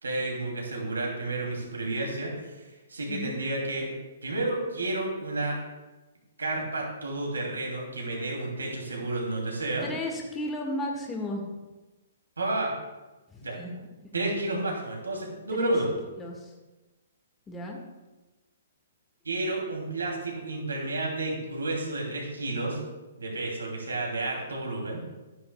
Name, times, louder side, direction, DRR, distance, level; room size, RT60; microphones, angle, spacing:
voice 1, 0.0-3.9 4.2-5.6 6.4-9.9 12.4-12.7 13.4-13.6 14.1-15.9 19.2-22.8 23.2-25.0, right 2 dB, 90° right, -1 dB, 2.8 m, -31 dB
voice 2, 9.8-11.4 13.3-13.7 14.0-14.1 15.5-15.7 16.2-16.5 17.5-17.8, left 1 dB, 15° left, 0 dB, 1.7 m, -34 dB
12.0 x 9.5 x 2.3 m, 1.1 s
hypercardioid pair, 130°, 0 cm